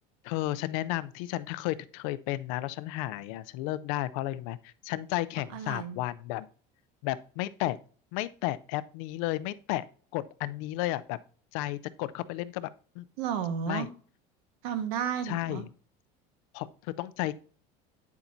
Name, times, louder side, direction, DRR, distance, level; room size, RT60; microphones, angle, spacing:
voice 1, 0.2-6.5 7.0-7.8 8.1-9.8 10.1-11.2 11.5-12.7 13.0-13.1 13.7-13.9 15.2-15.6 16.5-17.4, left 16 dB, 70° left, 16 dB, 0.5 m, -33 dB
voice 2, 5.5-6.0 13.2-13.9 14.6-15.6, right 8 dB, 80° right, 8 dB, 1.4 m, -32 dB
9.3 x 7.1 x 2.7 m, 0.42 s
cardioid pair, 175°, 18 cm